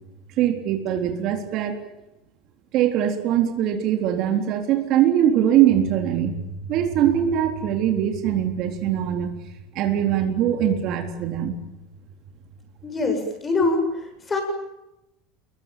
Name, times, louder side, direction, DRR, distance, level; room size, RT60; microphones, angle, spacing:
voice 1, 0.4-1.7 2.7-9.3 9.8-11.6, right 10 dB, 45° right, 5 dB, 3.8 m, -22 dB
voice 2, 12.8-14.4, left 3 dB, 15° left, 5 dB, 7.8 m, -24 dB
28.0 x 22.5 x 9.3 m, 0.94 s
supercardioid pair, 150°, 0 cm